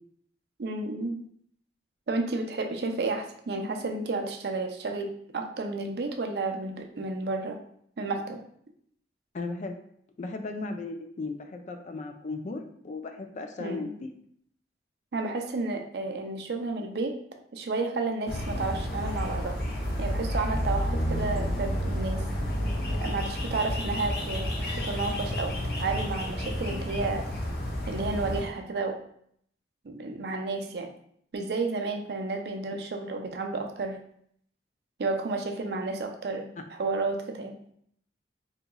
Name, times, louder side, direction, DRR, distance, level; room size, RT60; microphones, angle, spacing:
voice 1, 0.6-1.2 2.1-7.6 8.0-8.4 13.6-14.0 15.1-17.1 17.5-19.6 20.0-22.2 23.0-27.3 27.9-29.0 29.8-30.9 31.3-34.0 35.0-37.6, right 3 dB, 60° right, 4 dB, 0.4 m, -31 dB
voice 2, 9.3-9.7 10.2-14.1, left 3 dB, 40° left, 5 dB, 0.3 m, -36 dB
sound 1, 18.3-28.4, equal, 55° left, 0.7 m, -30 dB
3.8 x 2.8 x 2.2 m, 0.67 s
head